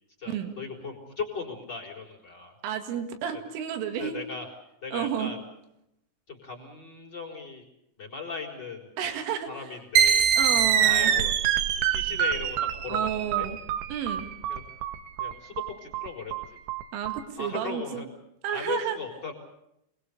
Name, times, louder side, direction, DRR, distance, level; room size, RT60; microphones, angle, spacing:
voice 1, 0.2-2.5 3.3-3.4 4.0-4.5 4.8-5.4 6.3-7.7 8.0-8.9 9.5-10.3 10.8-11.3 11.9-12.6 12.8-13.5 14.5-14.6 15.2-16.6 17.4-18.1 18.5-19.3, left 4 dB, 25° left, -1 dB, 4.2 m, -37 dB
voice 2, 2.6-4.2 4.9-5.3 9.0-9.7 10.4-11.1 12.9-13.6 13.9-14.3 16.9-18.1 18.4-19.0, right 8 dB, 90° right, 6 dB, 4.7 m, -31 dB
sound 1, 10.0-17.2, right 9 dB, 70° right, 2.5 m, -24 dB
28.0 x 21.0 x 6.9 m, 0.80 s
omnidirectional pair, 5.6 m